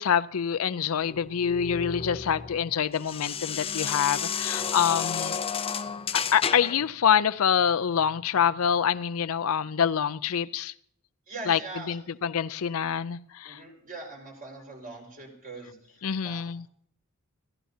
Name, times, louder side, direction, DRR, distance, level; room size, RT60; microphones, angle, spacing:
voice 1, 0.0-5.4 6.1-10.7 11.5-11.6 11.9-13.6 16.0-16.6, left 8 dB, 75° left, 13 dB, 0.5 m, -26 dB
sound 1, 1.0-6.9, left 7 dB, 25° left, 0.5 m, -32 dB
voice 2, 11.3-12.0 13.4-16.4, right 3 dB, 40° right, 1 dB, 5.0 m, -42 dB
22.5 x 15.5 x 2.8 m, 0.65 s
head